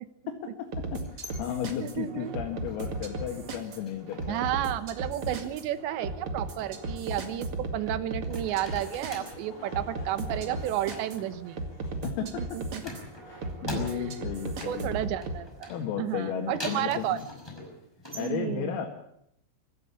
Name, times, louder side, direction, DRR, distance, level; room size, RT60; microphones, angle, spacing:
sound 1, 0.7-15.4, right 2 dB, 55° right, 1.6 m, -36 dB
voice 1, 0.9-4.4 7.2-7.6 12.0-12.6 13.2-15.0 15.7-17.2 18.2-18.9, left 8 dB, 80° left, 0 dB, 4.8 m, -34 dB
sound 2, 0.9-3.1 3.4-4.7 4.9-5.5 6.6-7.9 8.2-9.5 10.4-12.3 12.8-14.3 14.6-18.3, left 1 dB, 5° left, 5.0 m, -44 dB
voice 2, 1.8-2.4 4.3-11.6 12.4-12.8 13.9-14.1 14.6-15.7 16.0-17.2 18.2-18.8, right 12 dB, 75° right, 13 dB, 2.9 m, -32 dB
Laughter / Crowd, 8.9-13.1, left 5 dB, 55° left, 4.4 m, -52 dB
24.5 x 15.0 x 8.5 m, 0.75 s
omnidirectional pair, 6.0 m